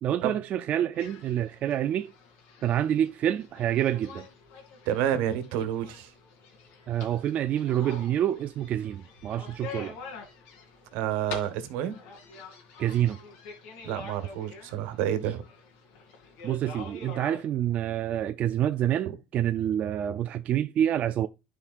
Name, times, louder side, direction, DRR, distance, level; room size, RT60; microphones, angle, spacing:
voice 1, 0.0-2.1 2.6-4.3 6.9-10.0 12.8-13.2 16.4-21.3, right 11 dB, 45° right, 0.5 m, -27 dB
sound 1, 0.9-17.4, left 4 dB, 80° left, 2.7 m, -46 dB
voice 2, 4.8-6.1 10.9-12.0 13.8-15.4, right 10 dB, 80° right, 1.5 m, -29 dB
11.5 x 5.1 x 2.5 m
cardioid pair, 115°, 3 cm